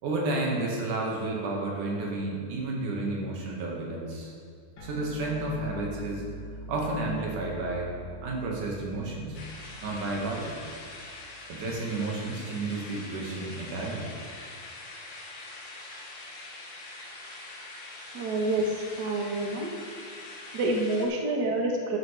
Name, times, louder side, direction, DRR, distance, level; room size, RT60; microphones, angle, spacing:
voice 1, 0.0-4.3 4.8-6.2 6.7-7.9 8.2-9.4 9.8-10.8 11.5-14.1, right 2 dB, 70° right, -2 dB, 3.1 m, -31 dB
sound 1, 4.8-11.6, equal, 70° left, 3.2 m, -44 dB
sound 2, 9.3-21.1, left 2 dB, 50° left, 2.0 m, -44 dB
voice 2, 18.1-19.7 20.5-22.0, right 2 dB, 85° right, 1 dB, 0.8 m, -28 dB
12.0 x 10.5 x 3.3 m, 2.3 s
omnidirectional pair, 3.8 m